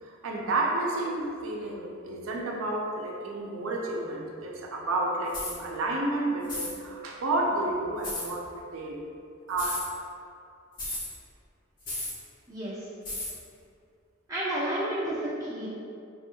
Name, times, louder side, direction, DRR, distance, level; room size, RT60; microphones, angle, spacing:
voice 1, 0.0-8.5 8.7-9.0 9.5-9.8, right 2 dB, 90° right, -1 dB, 0.5 m, -30 dB
sound 1, 5.3-5.6 6.4-6.8 8.0-8.3 9.5-9.9 10.8-11.1 11.9-12.2 13.1-13.4, left 1 dB, 45° left, 1.2 m, -34 dB
voice 2, 12.5-12.9 14.3-15.7, right 1 dB, 15° right, -10 dB, 1.1 m, -31 dB
5.2 x 3.4 x 2.2 m, 2.4 s
head